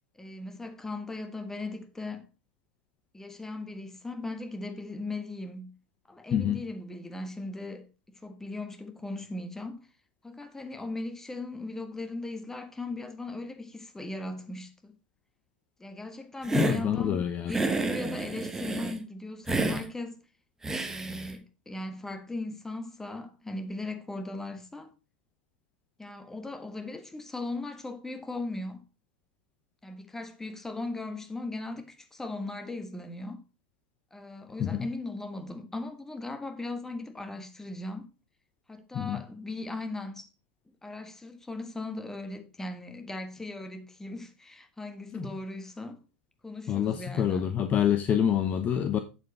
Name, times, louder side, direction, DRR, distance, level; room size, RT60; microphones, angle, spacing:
voice 1, 0.2-2.3 3.1-5.7 6.1-9.9 10.2-14.9 15.8-20.2 20.7-24.9 26.0-28.8 29.8-33.4 34.1-38.1 38.7-40.3 40.8-46.0 46.4-47.5, left 2 dB, 10° left, 1.5 m, -38 dB
voice 2, 6.3-6.6 16.5-17.5 34.6-34.9 38.9-39.2 45.1-45.3 46.7-49.0, left 9 dB, 30° left, 0.8 m, -27 dB
Hiss, 16.4-16.8 17.5-19.0 19.5-19.8 20.6-21.3, right 3 dB, 10° right, 1.2 m, -30 dB
7.7 x 7.1 x 4.2 m
hypercardioid pair, 95°, 5 cm